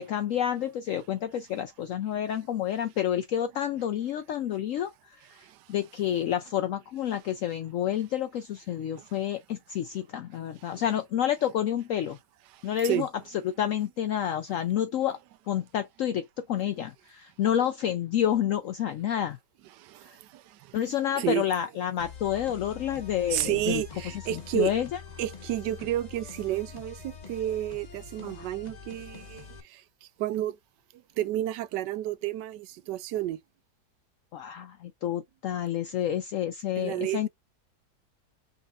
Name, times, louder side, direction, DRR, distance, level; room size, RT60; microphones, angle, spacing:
voice 1, 0.0-5.4 5.7-12.2 12.6-13.1 13.6-15.2 15.5-19.4 20.7-23.8 24.3-24.9 28.2-28.5 34.3-37.3, left 10 dB, 75° left, 0.7 m, -29 dB
voice 2, 19.7-20.8 21.2-21.4 23.3-24.7 25.2-29.4 29.7-29.8 30.2-30.5 31.2-33.4 36.8-37.3, right 13 dB, 80° right, 1.2 m, -31 dB
sound 1, 22.0-29.6, left 6 dB, 30° left, 0.8 m, -45 dB
5.4 x 3.7 x 2.3 m
omnidirectional pair, 1.9 m